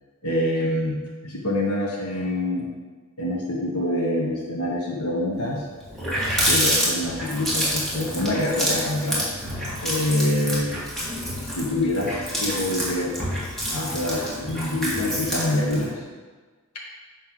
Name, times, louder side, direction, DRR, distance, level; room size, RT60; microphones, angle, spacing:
voice 1, 0.2-2.7 3.2-5.6 6.4-9.3 9.8-10.8 11.4-13.2 13.7-15.9, left 1 dB, 85° left, -3 dB, 1.3 m, -26 dB
Water tap faucet, 5.4-5.5 5.8-15.9, equal, ahead, 1.8 m, -27 dB
9.4 x 3.3 x 6.2 m, 1.4 s
head